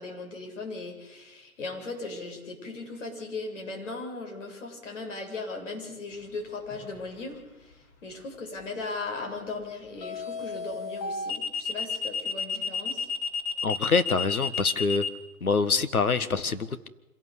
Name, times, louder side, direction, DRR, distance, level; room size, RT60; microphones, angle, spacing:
voice 1, 0.0-13.1, left 3 dB, 55° left, 1 dB, 7.9 m, -38 dB
sound 1, 6.7-7.0 10.0-15.1, left 5 dB, 20° left, 2.4 m, -31 dB
voice 2, 13.6-15.0 15.4-16.9, left 4 dB, 75° left, 10 dB, 1.8 m, -25 dB
26.0 x 17.5 x 8.4 m, 1.1 s
figure-of-eight pair, 130°, 43 cm